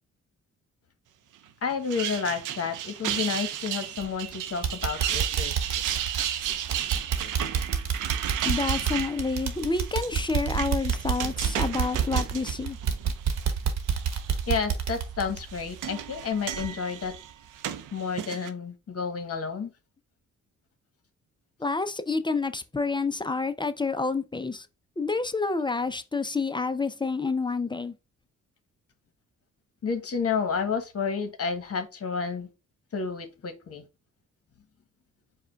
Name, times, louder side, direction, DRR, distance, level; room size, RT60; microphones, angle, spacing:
voice 1, 1.6-5.5 14.5-17.1 17.9-19.7 29.8-32.5 32.9-33.9, left 5 dB, 50° left, 1.2 m, -30 dB
sound 1, 1.7-13.5 13.9-14.5 15.3-18.5, right 10 dB, 75° right, 0.6 m, -34 dB
sound 2, 4.0-4.3 4.6-16.2 16.5-16.7 17.1-17.2, right 7 dB, 60° right, 1.0 m, -29 dB
voice 2, 8.4-12.8 21.6-24.7 25.0-27.9, left 4 dB, 15° left, 0.4 m, -28 dB
4.8 x 2.3 x 4.4 m
cardioid pair, 70°, 31 cm